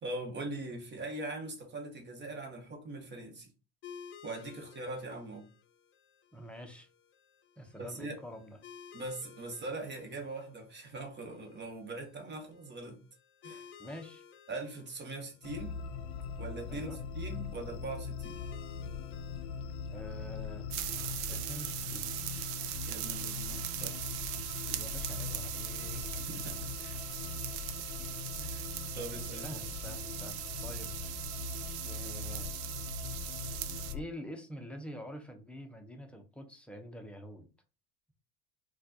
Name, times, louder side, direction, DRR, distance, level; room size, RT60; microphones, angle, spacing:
voice 1, 0.0-3.5 4.2-5.5 7.8-8.2 8.9-13.0 13.4-13.7 14.5-15.7 16.4-18.4 22.8-24.0 26.2-27.0 28.4-29.6, right 2 dB, 35° right, 1.3 m, -42 dB
sound 1, 3.8-23.0, left 7 dB, 40° left, 0.6 m, -56 dB
voice 2, 6.3-6.9 7.6-8.6 13.8-14.2 16.7-17.0 19.9-20.7 21.3-22.1 24.7-26.0 29.4-31.2 31.8-32.5 33.9-37.5, equal, 5° left, 0.7 m, -46 dB
sound 2, 15.4-34.0, left 6 dB, 85° left, 0.6 m, -41 dB
sound 3, 20.7-33.9, right 14 dB, 65° right, 0.5 m, -40 dB
4.1 x 2.4 x 2.7 m
supercardioid pair, 100°, 31 cm